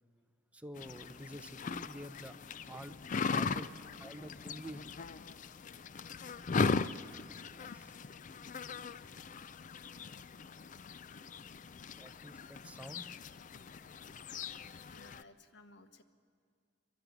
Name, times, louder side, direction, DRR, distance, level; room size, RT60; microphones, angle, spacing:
voice 1, 0.5-2.4 2.7-3.0 3.3-3.7 4.0-4.9 7.6-8.0 12.0-13.1, right 1 dB, 5° right, 8 dB, 0.7 m, -48 dB
sound 1, 0.8-15.2, left 4 dB, 40° left, 0.4 m, -39 dB
voice 2, 6.9-7.3 8.6-9.9 14.9-16.0, left 2 dB, 65° left, 10 dB, 1.1 m, -61 dB
28.0 x 12.0 x 9.4 m, 2.3 s
head